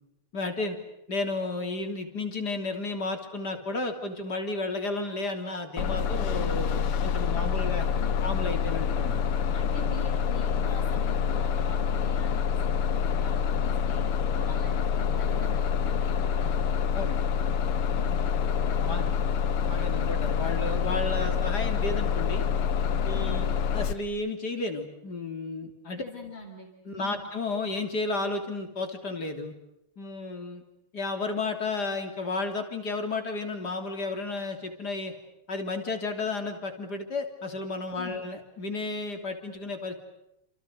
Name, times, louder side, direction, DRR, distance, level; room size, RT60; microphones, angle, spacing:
voice 1, 0.3-0.8 1.1-7.9 8.2-9.2 16.9-17.2 17.7-17.9 18.9-19.1 19.6-22.4 23.0-26.0 26.9-29.5 30.0-30.6 30.9-35.1 35.5-39.9, left 3 dB, 45° left, 5 dB, 3.8 m, -32 dB
Bus, 5.8-23.9, left 7 dB, 85° left, 2.1 m, -27 dB
voice 2, 7.3-8.1 9.5-16.6 17.9-18.2 18.6-19.1 19.9-20.2 23.1-23.4 26.0-27.2 37.9-38.2, left 3 dB, 65° left, -1 dB, 4.5 m, -44 dB
29.0 x 28.5 x 6.6 m, 0.85 s
omnidirectional pair, 2.4 m